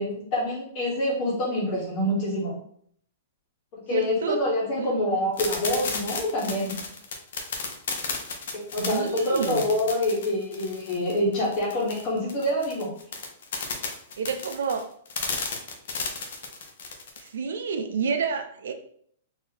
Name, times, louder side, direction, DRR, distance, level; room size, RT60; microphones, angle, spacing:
voice 1, 0.0-2.5 3.9-6.7 8.5-12.9, left 1 dB, 30° left, -3 dB, 1.3 m, -26 dB
voice 2, 3.9-4.4 4.8-4.9 8.8-9.7 14.2-14.9 17.2-18.7, right 5 dB, 80° right, 7 dB, 0.6 m, -29 dB
sound 1, 5.4-17.3, left 4 dB, 65° left, 0.8 m, -33 dB
4.1 x 2.8 x 2.9 m, 0.63 s
hypercardioid pair, 165°, 0 cm